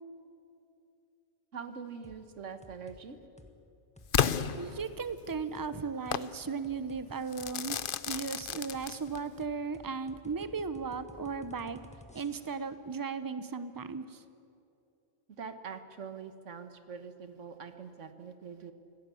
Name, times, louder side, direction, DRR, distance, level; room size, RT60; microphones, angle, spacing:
voice 1, 1.5-3.2 15.4-18.7, right 6 dB, 85° right, 9 dB, 1.7 m, -44 dB
sound 1, 2.0-2.2 2.6-3.0 3.4-3.6 4.0-4.4 4.7-4.9 5.3-5.7 6.1-6.2 6.6-7.0 7.4-12.7, left 1 dB, 5° left, 1.6 m, -54 dB
Crackle / Fireworks, 4.1-5.3 6.1-6.3 7.3-9.3, left 8 dB, 55° left, 0.8 m, -32 dB
voice 2, 4.6-7.8 8.1-11.8 12.1-14.2, right 5 dB, 20° right, 12 dB, 0.8 m, -36 dB
25.5 x 17.0 x 8.5 m, 2.7 s
omnidirectional pair, 1.2 m